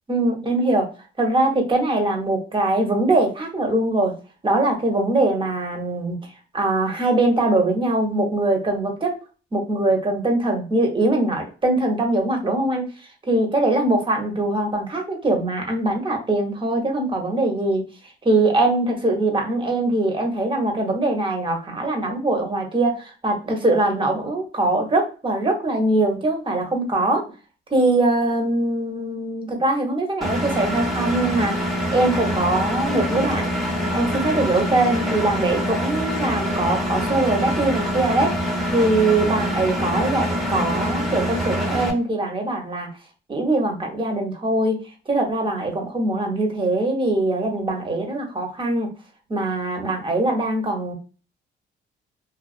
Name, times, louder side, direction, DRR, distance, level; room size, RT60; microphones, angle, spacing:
voice 1, 0.1-0.9 1.2-4.1 4.4-6.2 6.5-9.1 9.5-12.9 13.3-17.8 18.2-27.2 27.7-33.5 33.9-38.3 38.7-42.9 43.3-44.8 45.1-48.9 49.3-50.9, right 2 dB, 25° right, 2 dB, 0.8 m, -22 dB
Engine, 30.2-41.9, equal, ahead, 0.8 m, -25 dB
2.4 x 2.3 x 2.4 m, 0.34 s
cardioid pair, 90°, 20 cm